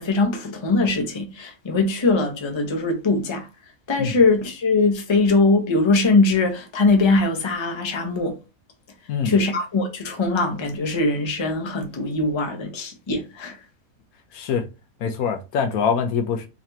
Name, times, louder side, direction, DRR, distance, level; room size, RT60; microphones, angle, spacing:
voice 1, 0.0-3.5 3.9-8.3 9.2-13.6, left 3 dB, 25° left, 0.6 m, -21 dB
voice 2, 14.3-14.6 15.0-16.5, left 6 dB, 75° left, 1.1 m, -24 dB
4.0 x 3.0 x 2.8 m
omnidirectional pair, 1.6 m